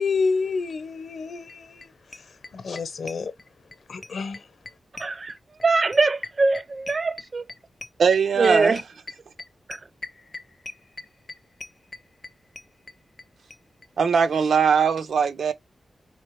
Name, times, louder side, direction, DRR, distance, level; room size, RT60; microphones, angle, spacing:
voice 1, 0.0-2.3 2.5-3.3 3.9-4.5, left 4 dB, 65° left, 0.8 m, -29 dB
sound 1, 1.5-1.6 1.8-13.3 13.5-13.6 13.8-13.9 14.1-14.2, left 3 dB, 30° left, 0.5 m, -39 dB
voice 2, 5.0-5.4 5.6-7.4 8.4-8.8 9.7-9.8, right 3 dB, 40° right, 0.4 m, -22 dB
voice 3, 8.0-8.8 14.0-15.5, right 6 dB, 80° right, 0.6 m, -20 dB
4.4 x 3.7 x 3.1 m
wide cardioid pair, 130°, 0 cm